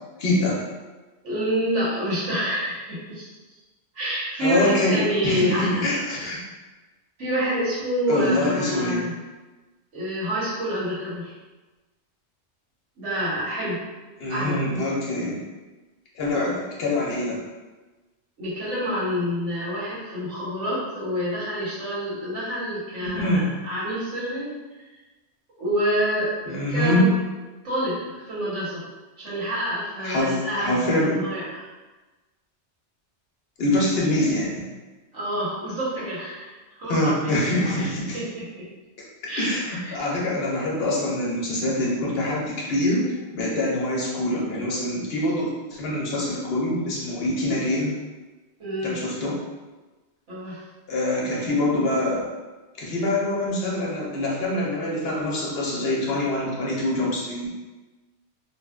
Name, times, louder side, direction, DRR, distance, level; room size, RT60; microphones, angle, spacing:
voice 1, 0.2-0.6 4.4-6.4 8.1-9.0 14.2-15.4 16.1-17.4 23.0-23.5 26.5-27.1 30.0-31.3 33.6-34.7 36.9-38.2 39.4-43.0 43.3-47.9 48.8-49.4 50.9-52.3 52.8-57.5, left 1 dB, 65° left, -4 dB, 0.7 m, -24 dB
voice 2, 1.2-3.3 3.9-5.8 7.2-9.1 9.9-11.3 13.0-13.8 14.3-14.6 18.4-24.5 25.6-27.1 27.6-28.8 29.2-31.6 33.7-33.8 35.1-36.5 36.8-37.9 38.1-38.6 39.3-40.0 48.6-49.0 50.3-50.6, equal, 85° right, -9 dB, 1.4 m, -27 dB
2.7 x 2.1 x 2.2 m, 1.2 s
omnidirectional pair, 1.2 m